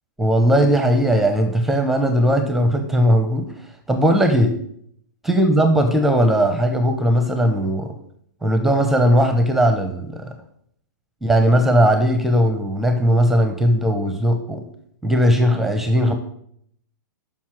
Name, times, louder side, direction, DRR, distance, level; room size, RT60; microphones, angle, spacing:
voice 1, 0.2-3.5 3.9-4.5 5.2-7.9 8.4-10.3 11.2-14.6 15.0-16.2, equal, ahead, 6 dB, 0.8 m, -18 dB
7.2 x 5.6 x 6.0 m, 0.69 s
figure-of-eight pair, 115°, 11 cm